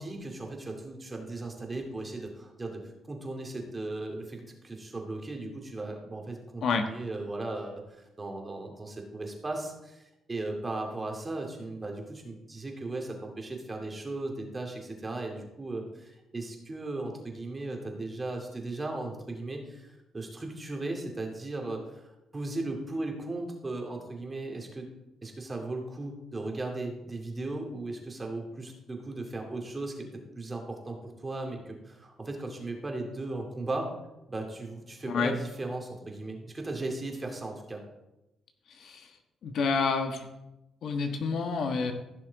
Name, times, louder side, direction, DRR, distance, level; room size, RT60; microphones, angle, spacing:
voice 1, 0.0-2.8 3.1-24.9 25.2-30.1 30.4-31.0 31.2-33.9 34.3-37.8, right 2 dB, 25° right, 2 dB, 2.4 m, -37 dB
voice 2, 38.7-39.1 39.4-40.3 40.8-41.9, left 5 dB, 65° left, 5 dB, 1.3 m, -29 dB
15.5 x 6.3 x 4.0 m, 0.94 s
cardioid pair, 90°, 0 cm